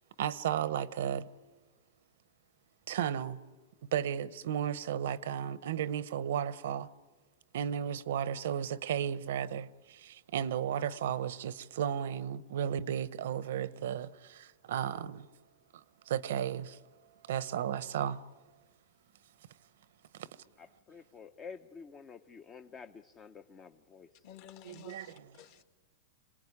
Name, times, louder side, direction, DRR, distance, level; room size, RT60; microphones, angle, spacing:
voice 1, 0.2-1.3 2.9-3.4 3.8-6.9 7.5-15.3 15.7-16.8 17.2-18.2 20.1-20.3 24.6-25.3, right 9 dB, 75° right, 0.9 m, -34 dB
voice 2, 20.6-24.2, left 5 dB, 20° left, 0.7 m, -50 dB
voice 3, 24.2-25.6, left 10 dB, 50° left, 2.0 m, -53 dB
26.5 x 19.5 x 9.8 m
supercardioid pair, 155°, 0 cm